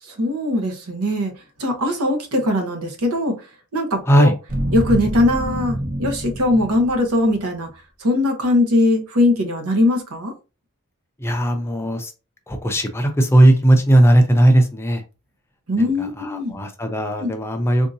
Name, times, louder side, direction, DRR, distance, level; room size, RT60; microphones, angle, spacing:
voice 1, 0.0-1.3 1.6-3.5 3.7-4.3 4.7-7.7 8.0-10.3 15.7-16.5 17.2-17.3, left 1 dB, 75° right, 0.9 m, -20 dB
sound 1, 4.5-7.4 7.7-7.8, right 1 dB, 40° right, 0.7 m, -26 dB
voice 2, 11.2-12.1 12.5-15.0 15.8-17.9, right 1 dB, 10° left, 0.5 m, -17 dB
3.7 x 2.7 x 2.6 m
head